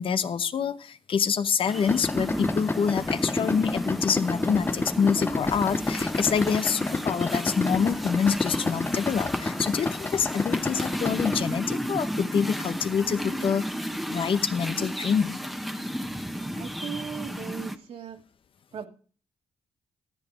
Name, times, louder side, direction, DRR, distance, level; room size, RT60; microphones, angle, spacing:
voice 1, 0.0-13.7 14.1-15.4, left 7 dB, 60° left, 13 dB, 0.8 m, -26 dB
sound 1, 1.7-17.8, equal, ahead, 1.2 m, -33 dB
Idling, 1.9-11.4, left 3 dB, 20° left, 0.7 m, -30 dB
voice 2, 16.6-18.2 18.7-18.9, right 7 dB, 70° right, 3 dB, 2.4 m, -37 dB
13.5 x 7.9 x 5.0 m, 0.40 s
cardioid pair, 75°, 10 cm